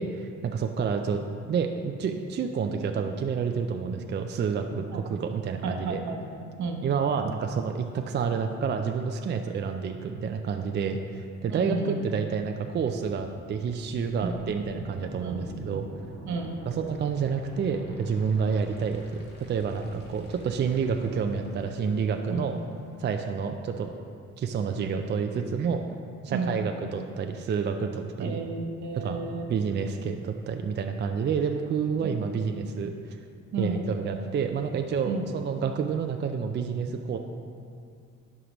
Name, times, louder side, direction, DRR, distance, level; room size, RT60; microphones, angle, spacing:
voice 1, 0.0-6.0 6.8-15.8 16.7-19.0 19.4-22.5 23.0-23.9 24.4-25.8 26.2-28.4 28.9-29.2 29.5-33.2 33.6-37.2, right 6 dB, 35° right, 5 dB, 0.4 m, -29 dB
voice 2, 5.6-6.3 6.6-6.8 11.5-12.0 14.2-14.4 15.2-15.4 16.2-16.6 22.3-22.6 26.3-26.6 28.2-29.6 32.0-32.2 33.5-33.8 35.1-35.2, right 4 dB, 70° right, 3 dB, 1.0 m, -32 dB
sound 1, 12.3-24.3, right 1 dB, 35° left, 1.4 m, -45 dB
11.0 x 4.8 x 3.0 m, 2.3 s
cardioid pair, 90°, 30 cm